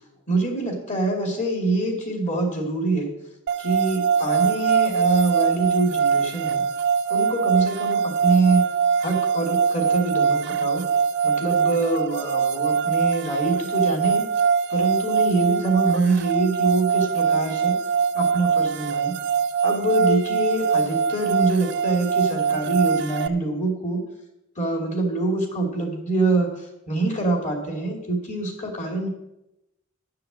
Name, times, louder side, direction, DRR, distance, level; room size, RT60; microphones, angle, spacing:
voice 1, 0.3-3.1 3.6-6.6 7.1-8.6 9.0-10.9 11.2-14.3 14.7-17.8 18.1-19.1 19.6-24.0 24.6-26.5 26.9-29.1, right 2 dB, 35° left, 2 dB, 2.7 m, -24 dB
sound 1, 3.5-23.3, right 6 dB, 55° right, 0.4 m, -23 dB
11.0 x 6.6 x 7.5 m, 0.87 s
head